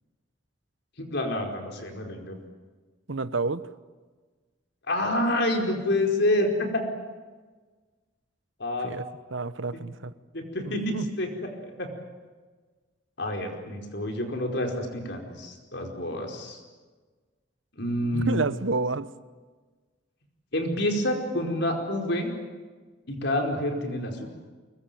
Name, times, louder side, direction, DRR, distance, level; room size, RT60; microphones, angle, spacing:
voice 1, 1.0-2.4 4.9-6.8 8.6-8.9 10.3-11.9 13.2-16.6 17.8-18.4 20.5-22.3 23.1-24.3, left 1 dB, 65° left, 3 dB, 4.8 m, -28 dB
voice 2, 3.1-3.6 8.8-9.0 9.3-10.1 10.6-11.1 18.1-19.1, right 3 dB, 90° right, 15 dB, 1.0 m, -29 dB
24.5 x 21.5 x 9.3 m, 1.4 s
head